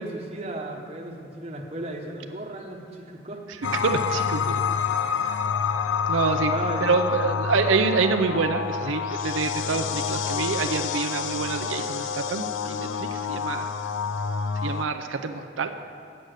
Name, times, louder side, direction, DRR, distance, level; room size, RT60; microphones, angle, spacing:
voice 1, 0.0-3.4 5.2-5.3 6.4-6.9 7.4-7.5, right 2 dB, 35° right, 1 dB, 1.0 m, -35 dB
sound 1, 3.6-14.9, left 6 dB, 85° left, 0.4 m, -28 dB
voice 2, 3.8-4.6 6.1-6.5 6.8-13.7 14.6-15.7, right 4 dB, 90° right, 5 dB, 0.5 m, -26 dB
8.6 x 7.9 x 6.5 m, 2.5 s
head